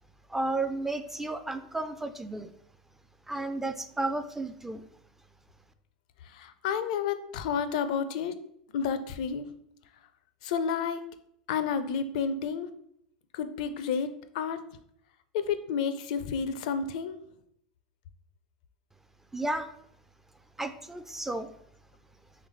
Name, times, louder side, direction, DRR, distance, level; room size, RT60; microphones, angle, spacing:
voice 1, 0.3-2.5 3.3-4.8 19.3-19.7 20.6-21.5, right 2 dB, 10° right, 9 dB, 0.3 m, -32 dB
voice 2, 6.2-8.4 8.7-9.5 10.4-11.0 11.5-12.7 13.3-14.6 15.3-17.2, left 6 dB, 70° left, 11 dB, 0.5 m, -30 dB
3.9 x 3.5 x 3.2 m, 0.69 s
hypercardioid pair, 95°, 4 cm